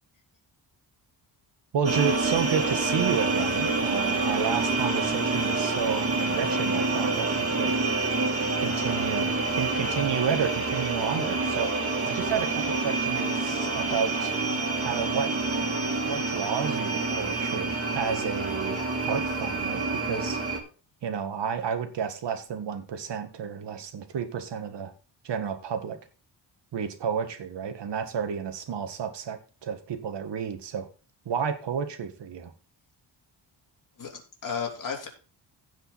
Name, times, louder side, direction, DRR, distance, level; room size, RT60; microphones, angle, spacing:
voice 1, 1.7-7.8 8.5-11.7 12.1-14.3 14.8-15.3 16.1-20.4 21.0-24.9 25.2-26.0 26.7-30.9 31.3-32.5, right 7 dB, 65° right, 8 dB, 1.8 m, -31 dB
sound 1, 1.8-20.6, right 3 dB, 30° right, 2.7 m, -27 dB
voice 2, 34.0-35.1, left 6 dB, 45° left, 0 dB, 3.6 m, -33 dB
16.0 x 5.4 x 4.1 m, 0.36 s
wide cardioid pair, 130°, 45 cm